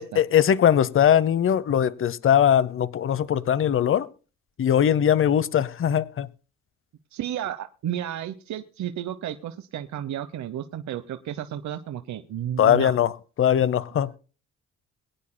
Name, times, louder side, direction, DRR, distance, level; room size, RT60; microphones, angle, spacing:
voice 1, 0.0-4.1 4.6-6.3 12.6-13.1 13.4-14.1, left 9 dB, 45° left, 0.8 m, -20 dB
voice 2, 7.1-12.9, right 11 dB, 70° right, 1.0 m, -32 dB
22.5 x 9.9 x 2.2 m
cardioid pair, 90°, 30 cm